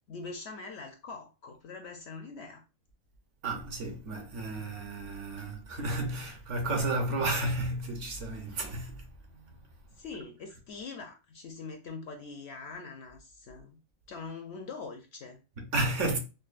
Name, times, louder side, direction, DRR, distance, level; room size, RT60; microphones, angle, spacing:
voice 1, 0.1-2.6 10.0-13.8 14.1-15.4, left 4 dB, 65° left, 0.7 m, -43 dB
voice 2, 3.4-9.1 9.3-9.5 15.6-16.2, right 2 dB, 65° right, 1.1 m, -32 dB
5.2 x 2.2 x 2.4 m
omnidirectional pair, 1.4 m